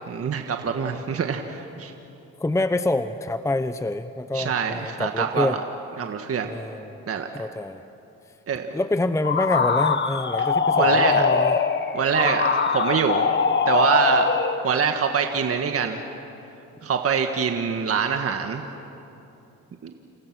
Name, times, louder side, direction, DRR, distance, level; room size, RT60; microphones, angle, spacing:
voice 1, 0.1-1.9 4.3-5.6 6.0-6.5 7.1-7.3 8.5-8.7 10.8-11.2 11.9-13.2 13.7-14.3 14.6-16.0 16.8-18.6 19.8-19.9, right 6 dB, 50° right, 5 dB, 1.6 m, -24 dB
voice 2, 2.4-5.6 6.5-7.0 7.3-7.8 8.7-11.6 12.1-12.4, left 2 dB, 10° left, 10 dB, 0.8 m, -26 dB
sound 1, 9.2-14.7, left 5 dB, 35° left, 1.3 m, -22 dB
29.0 x 28.5 x 6.2 m, 2.9 s
cardioid pair, 90°, 30 cm